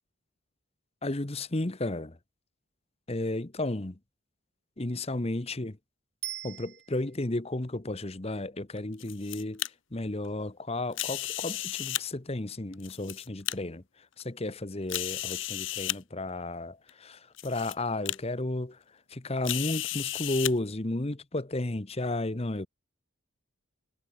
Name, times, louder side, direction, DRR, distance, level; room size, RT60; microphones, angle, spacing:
voice 1, 1.0-2.2 3.1-4.0 4.8-5.8 6.4-9.6 9.9-13.8 14.2-18.8 19.1-22.7, left 2 dB, 30° left, 1.0 m, -33 dB
Bicycle bell, 6.2-7.3 16.4-16.5, right 14 dB, 50° right, 3.4 m, -41 dB
sound 1, 8.8-9.7 10.9-12.0 12.7-13.5 14.2-14.3 14.9-16.0 16.9-17.0 17.4-17.7 18.1-18.2 19.4-20.5, left 15 dB, 60° left, 1.2 m, -33 dB
head